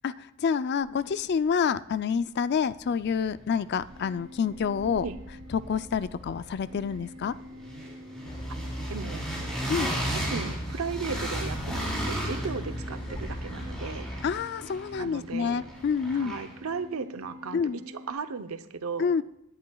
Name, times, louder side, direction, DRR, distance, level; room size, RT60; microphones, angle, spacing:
voice 1, 0.0-5.0 5.5-7.3 9.7-9.9 14.2-16.3 17.5-17.8 19.0-19.2, left 6 dB, 50° left, 15 dB, 0.4 m, -28 dB
sound 1, 2.7-2.8 3.1-4.2 4.5-16.7, equal, 5° left, 3.6 m, -36 dB
sound 2, 3.8-18.1, equal, 60° right, 5.0 m, -48 dB
sound 3, 8.3-14.3, equal, 20° left, 0.7 m, -37 dB
voice 2, 8.9-9.5 10.1-14.1 15.0-15.6 16.1-19.1, right 5 dB, 80° right, 10 dB, 0.7 m, -36 dB
17.0 x 11.0 x 2.3 m, 0.85 s
head